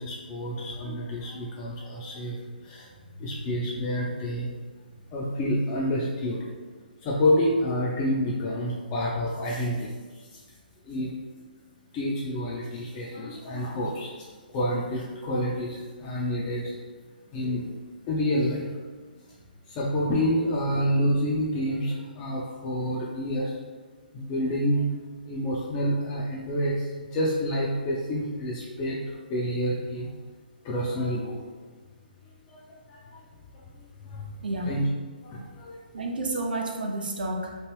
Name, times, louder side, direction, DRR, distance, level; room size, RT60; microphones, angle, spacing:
voice 1, 0.0-2.4 2.6-2.9 3.2-4.5 5.1-6.5 7.0-9.9 10.3-10.4 10.9-11.1 11.9-16.8 17.3-17.7 18.1-18.7 19.7-23.6 24.1-24.9 25.3-30.1 30.6-31.4 32.5-32.6 32.9-33.0 34.0-34.2 34.7-34.8 35.2-35.8, equal, 25° left, -4 dB, 0.4 m, -28 dB
voice 2, 3.1-3.4 34.4-34.8 35.9-37.6, right 2 dB, 65° right, 1 dB, 0.6 m, -31 dB
3.1 x 2.5 x 3.1 m, 1.4 s
figure-of-eight pair, 135°, 5 cm